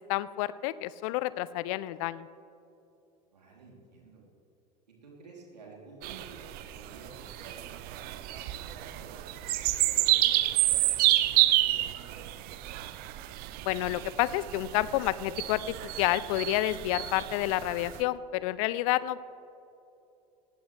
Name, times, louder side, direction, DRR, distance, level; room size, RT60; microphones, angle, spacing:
voice 1, 0.1-2.3 13.6-19.2, left 15 dB, 55° left, 18 dB, 0.5 m, -29 dB
voice 2, 3.3-4.2 4.9-9.3 9.7-12.3, right 3 dB, 80° right, -2 dB, 3.2 m, -51 dB
sound 1, 6.0-18.0, right 16 dB, 50° right, 0.8 m, -29 dB
18.5 x 16.0 x 3.3 m, 2.8 s
figure-of-eight pair, 75°, 21 cm